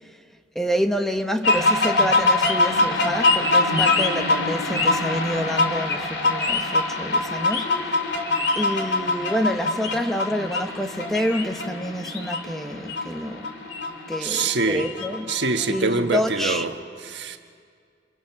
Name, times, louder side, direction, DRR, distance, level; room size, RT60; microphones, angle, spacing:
voice 1, 0.5-8.0 8.6-13.5 14.1-15.4 15.7-16.7, equal, ahead, 5 dB, 1.0 m, -28 dB
sound 1, 1.4-16.6, left 2 dB, 85° left, 2.5 m, -24 dB
voice 2, 14.2-14.9 15.3-17.4, right 3 dB, 75° right, 5 dB, 1.3 m, -25 dB
28.5 x 28.5 x 5.8 m, 2.2 s
head